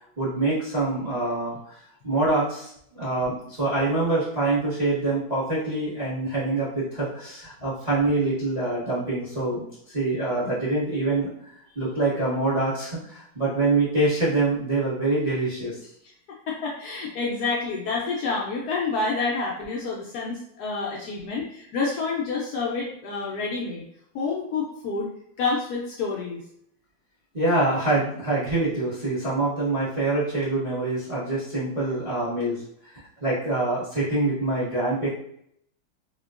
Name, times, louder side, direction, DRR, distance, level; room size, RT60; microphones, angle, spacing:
voice 1, 0.2-11.3 11.7-15.8 27.3-32.6 33.2-35.1, right 2 dB, 35° right, -9 dB, 0.7 m, -25 dB
voice 2, 16.5-23.8 24.1-25.1 25.4-26.4, left 4 dB, 80° left, -3 dB, 0.8 m, -28 dB
4.3 x 2.2 x 2.4 m, 0.71 s
omnidirectional pair, 2.2 m